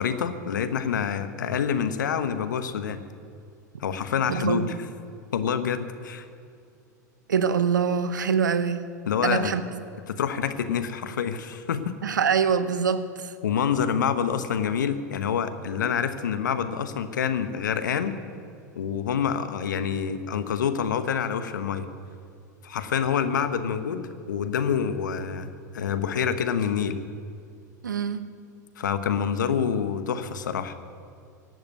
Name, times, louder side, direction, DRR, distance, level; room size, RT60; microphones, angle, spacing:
voice 1, 0.0-3.0 3.8-4.7 5.3-6.3 9.1-9.5 10.1-12.0 13.4-18.1 18.8-21.9 22.6-27.0 28.8-30.7, left 7 dB, 80° left, 10 dB, 1.1 m, -27 dB
voice 2, 4.3-4.8 7.3-8.9 9.2-9.6 12.0-13.3 27.8-28.2, right 6 dB, 85° right, 13 dB, 0.9 m, -24 dB
16.5 x 8.0 x 9.4 m, 2.4 s
hypercardioid pair, 95°, 10 cm